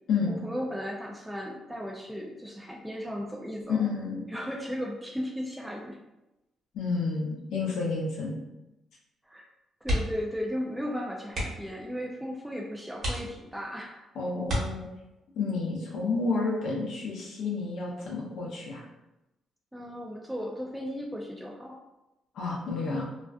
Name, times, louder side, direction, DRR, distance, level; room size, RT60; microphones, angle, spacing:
voice 1, 0.3-3.9 4.3-6.0 9.2-9.5 9.8-14.1 19.7-21.8, equal, 5° right, -1 dB, 0.4 m, -36 dB
voice 2, 3.7-4.2 6.7-8.4 14.1-14.9 15.4-18.8 22.3-23.0, left 4 dB, 75° left, -3 dB, 0.6 m, -30 dB
sound 1, 9.8-10.3 10.6-10.8 11.3-11.8 12.4-12.5 13.0-13.7 14.4-15.2 16.8-17.1 17.4-17.5, equal, 55° right, 1.0 m, -32 dB
2.4 x 2.3 x 2.3 m, 0.96 s
cardioid pair, 90°, 0 cm